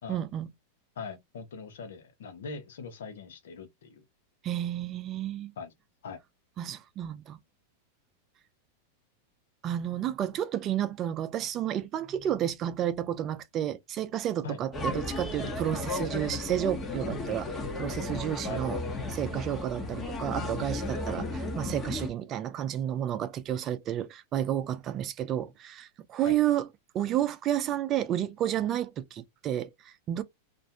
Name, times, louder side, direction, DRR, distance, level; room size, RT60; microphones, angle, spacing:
voice 1, 0.1-0.5 4.4-5.5 6.6-7.4 9.6-18.8 19.1-26.7 26.9-30.2, right 11 dB, 35° right, 0.4 m, -31 dB
voice 2, 1.0-4.0 5.6-5.7 6.0-6.2 14.4-14.6 18.5-18.6 26.2-26.4, left 4 dB, 80° left, 0.8 m, -41 dB
sound 1, 14.7-22.1, left 2 dB, 20° left, 0.9 m, -34 dB
2.5 x 2.1 x 2.7 m
hypercardioid pair, 115°, 0 cm